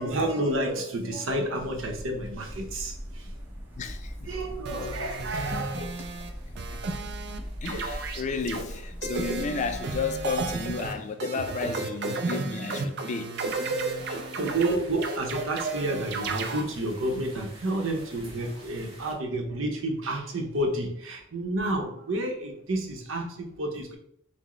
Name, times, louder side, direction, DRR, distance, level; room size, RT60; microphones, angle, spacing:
voice 1, 0.0-3.3 4.3-5.8 14.4-24.0, right 1 dB, 85° right, 0.8 m, -30 dB
sound 1, 1.6-10.9, equal, 10° right, 0.7 m, -40 dB
voice 2, 3.8-4.9 5.5-5.7 6.7-6.8 7.6-13.4 14.0-14.3, left 4 dB, 35° left, 0.3 m, -33 dB
sound 2, 4.6-6.3 6.6-7.4 7.6-8.6 9.0-16.6, right 3 dB, 55° right, 0.5 m, -33 dB
sound 3, 13.3-19.1, right 1 dB, 30° right, 1.2 m, -49 dB
5.9 x 2.1 x 3.1 m
head